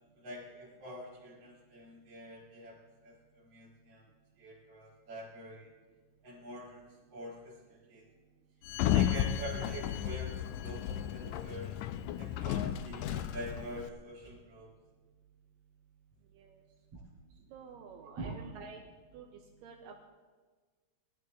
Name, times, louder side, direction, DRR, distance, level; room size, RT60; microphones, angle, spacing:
voice 1, 0.2-4.0 4.4-5.7 6.2-6.9 7.1-8.0 8.9-11.8 12.2-14.7 16.9-17.0 18.0-18.4, right 1 dB, 50° right, -7 dB, 3.4 m, -45 dB
Sliding door, 8.7-13.9, left 11 dB, 90° left, 1.7 m, -33 dB
voice 2, 17.5-18.8 19.1-19.3 19.6-20.0, right 6 dB, 80° right, 1 dB, 2.6 m, -49 dB
20.5 x 12.5 x 3.7 m, 1.4 s
omnidirectional pair, 3.9 m